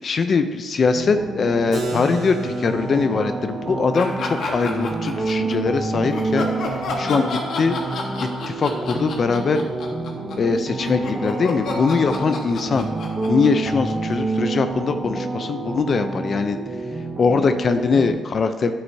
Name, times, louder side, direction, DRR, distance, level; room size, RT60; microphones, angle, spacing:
voice 1, 0.0-6.5 7.0-7.8 8.2-9.7 10.4-12.9 13.3-16.6 17.2-18.7, left 4 dB, 45° left, 9 dB, 0.5 m, -21 dB
sound 1, 0.9-18.1, right 3 dB, 25° right, 1.1 m, -28 dB
Keyboard (musical), 1.7-7.3, equal, 65° right, 2.5 m, -37 dB
sound 2, 3.9-5.5 6.1-14.4, left 3 dB, 70° left, 1.4 m, -30 dB
10.0 x 7.8 x 2.8 m, 1.3 s
cardioid pair, 90°, 0 cm